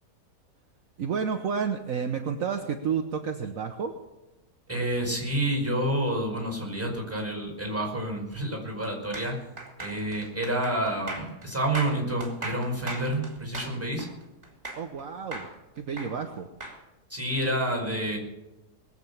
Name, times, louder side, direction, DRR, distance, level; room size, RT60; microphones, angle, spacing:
voice 1, 1.0-3.9 14.8-15.5 15.7-16.5, right 6 dB, 60° right, 5 dB, 1.3 m, -30 dB
voice 2, 4.7-9.4 9.8-14.1 17.1-18.2, right 1 dB, 10° right, 1 dB, 5.1 m, -29 dB
sound 1, 9.1-15.0 15.3-16.8, right 2 dB, 30° right, 3.1 m, -38 dB
20.5 x 8.1 x 7.1 m, 1.0 s
omnidirectional pair, 1.7 m